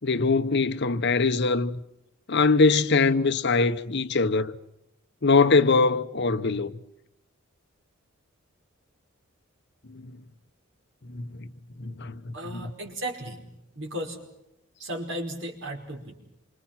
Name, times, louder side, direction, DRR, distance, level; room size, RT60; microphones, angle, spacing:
voice 1, 0.0-1.8 2.3-4.6 5.2-6.8 11.1-11.5 11.8-12.3, left 4 dB, 55° left, 0.9 m, -22 dB
voice 2, 12.3-13.4 13.8-14.2 14.8-16.1, right 1 dB, 65° right, 5.1 m, -35 dB
27.5 x 25.0 x 5.9 m
head